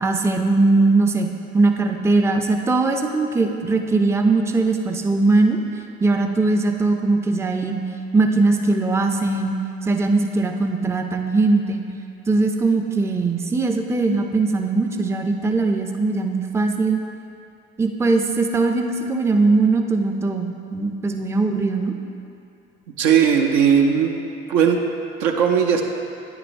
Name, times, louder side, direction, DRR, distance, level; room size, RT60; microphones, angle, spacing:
voice 1, 0.0-5.6 6.0-7.8 8.1-9.6 9.9-11.8 12.3-17.0 17.8-21.9, right 3 dB, 10° right, 4 dB, 0.5 m, -20 dB
voice 2, 23.0-24.2 24.5-24.8 25.2-25.8, right 7 dB, 70° right, 2 dB, 0.7 m, -17 dB
9.1 x 7.0 x 2.6 m, 2.6 s
hypercardioid pair, 55°, 31 cm